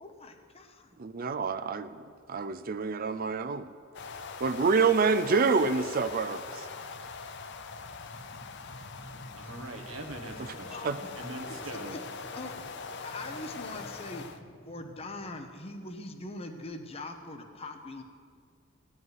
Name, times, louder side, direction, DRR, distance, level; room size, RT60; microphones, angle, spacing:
voice 1, 0.0-1.0 10.7-10.9 11.7-14.3 14.6-18.0, left 2 dB, 30° left, 5 dB, 0.9 m, -42 dB
voice 2, 1.0-1.9 2.3-3.7 4.4-6.6 10.4-10.5 10.8-11.0, right 4 dB, 45° right, 11 dB, 0.5 m, -27 dB
sound 1, 3.9-14.4, left 4 dB, 60° left, 0.7 m, -42 dB
sound 2, 7.5-15.5, equal, 75° left, 2.1 m, -54 dB
voice 3, 9.3-12.0, right 2 dB, 90° right, 4 dB, 1.5 m, -42 dB
16.0 x 5.6 x 9.4 m, 2.1 s
head